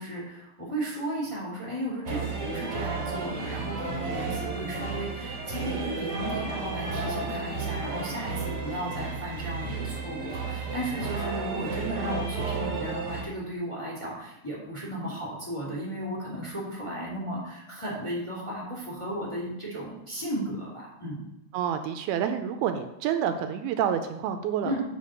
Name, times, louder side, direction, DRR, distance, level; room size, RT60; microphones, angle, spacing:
voice 1, 0.0-21.3 24.6-24.8, right 1 dB, 10° left, -5 dB, 1.9 m, -35 dB
sound 1, 2.0-13.2, right 4 dB, 50° right, 1.8 m, -32 dB
voice 2, 21.5-24.7, right 9 dB, 85° right, 7 dB, 2.4 m, -28 dB
8.4 x 5.1 x 6.4 m, 0.86 s
omnidirectional pair, 4.6 m